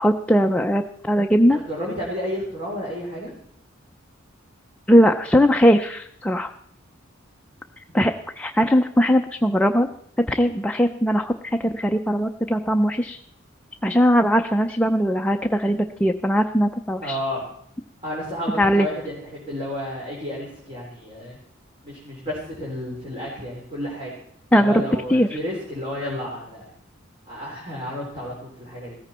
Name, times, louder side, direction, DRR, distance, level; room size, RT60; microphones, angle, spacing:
voice 1, 0.0-1.6 4.9-6.5 7.9-9.9 10.3-13.2 13.8-17.2 18.6-18.9 24.5-24.8 25.1-25.4, equal, 5° left, 4 dB, 0.5 m, -19 dB
voice 2, 1.5-3.3 17.0-17.4 18.0-21.4 21.8-24.1 24.6-26.7 27.3-29.0, equal, 30° right, -4 dB, 3.5 m, -31 dB
16.5 x 14.5 x 4.3 m, 0.70 s
head